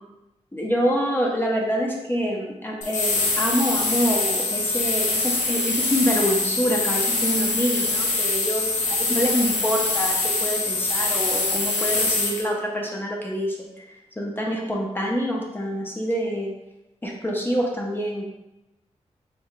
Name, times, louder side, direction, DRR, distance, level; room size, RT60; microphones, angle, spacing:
voice 1, 0.5-13.7 14.2-16.5 17.0-18.2, equal, 15° left, -1 dB, 0.5 m, -26 dB
sound 1, 2.8-12.4, left 3 dB, 85° left, 0.6 m, -24 dB
3.5 x 2.1 x 3.6 m, 0.95 s
wide cardioid pair, 115°, 12 cm